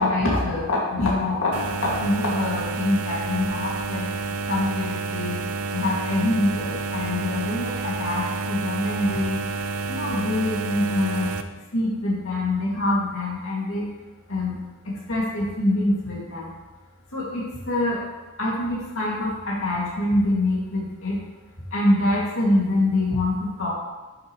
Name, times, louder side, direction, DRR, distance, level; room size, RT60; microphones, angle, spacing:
voice 1, 0.0-5.4 5.7-9.4 9.9-11.3 11.7-13.8 14.3-14.6 14.8-16.5 17.1-18.0 18.4-21.2 21.7-23.7, left 1 dB, 65° left, -5 dB, 2.5 m, -25 dB
sound 1, 1.5-11.4, right 4 dB, 75° right, 0.5 m, -29 dB
10.0 x 6.8 x 3.2 m, 1.2 s
head